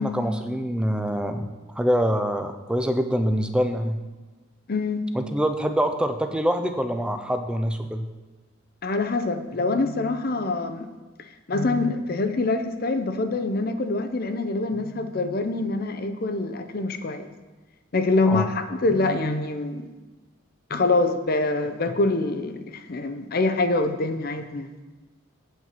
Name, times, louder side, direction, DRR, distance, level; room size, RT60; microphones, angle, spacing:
voice 1, 0.0-1.5 1.7-4.0 5.1-8.1 18.2-18.5, equal, 5° right, 7 dB, 0.4 m, -25 dB
voice 2, 4.7-5.1 8.8-10.9 11.5-17.3 17.9-19.8 20.7-24.7, left 2 dB, 45° left, 8 dB, 0.6 m, -25 dB
8.2 x 4.6 x 7.3 m, 1.2 s
head